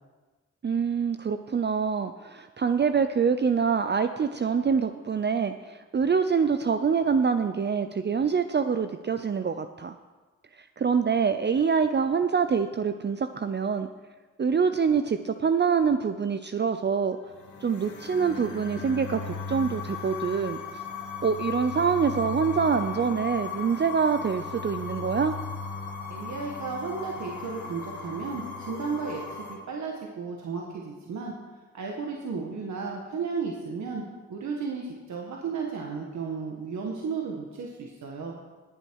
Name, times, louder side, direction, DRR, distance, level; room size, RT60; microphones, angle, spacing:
voice 1, 0.6-9.9 10.8-13.9 14.4-17.2 17.6-20.6 21.2-25.4, right 6 dB, 35° right, 9 dB, 0.6 m, -25 dB
sound 1, 17.3-29.6, left 5 dB, 80° left, 1.9 m, -37 dB
voice 2, 26.1-29.2 29.5-31.3 31.7-34.0 34.3-38.4, right 5 dB, 75° right, -1 dB, 1.5 m, -34 dB
18.0 x 7.9 x 4.7 m, 1.3 s
cardioid pair, 60°, 29 cm